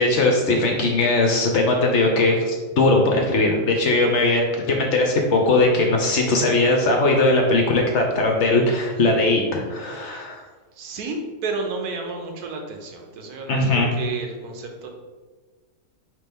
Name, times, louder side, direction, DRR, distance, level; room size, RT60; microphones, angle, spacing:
voice 1, 0.0-10.4 13.5-13.9, left 2 dB, 60° left, 1 dB, 0.8 m, -19 dB
voice 2, 10.7-14.9, right 3 dB, 90° right, 3 dB, 1.2 m, -31 dB
4.5 x 3.2 x 3.5 m, 1.4 s
omnidirectional pair, 1.6 m